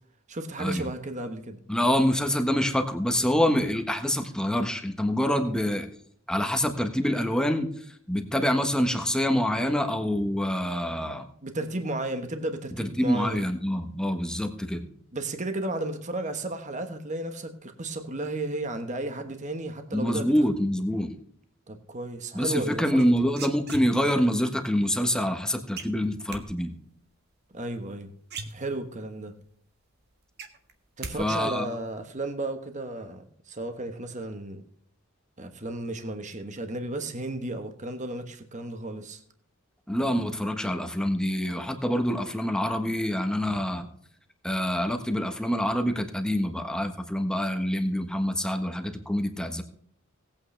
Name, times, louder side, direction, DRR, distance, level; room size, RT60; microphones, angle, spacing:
voice 1, 0.3-1.6 5.3-5.5 11.4-13.4 15.1-20.3 21.7-23.3 27.5-28.1 28.5-29.3 31.0-34.6 35.4-39.2, right 2 dB, 35° right, 7 dB, 1.3 m, -34 dB
voice 2, 1.7-5.9 6.3-7.7 8.1-11.3 12.8-14.9 19.9-21.1 22.3-26.8 31.2-31.6 39.9-43.9 44.4-49.6, equal, 5° left, 5 dB, 1.3 m, -26 dB
sound 1, 23.0-24.3 25.8-26.4 27.9-28.0 28.2-29.1 29.5-29.6 29.9-31.2 31.4-31.9, right 4 dB, 50° right, 1.5 m, -39 dB
18.5 x 8.7 x 3.3 m, 0.63 s
head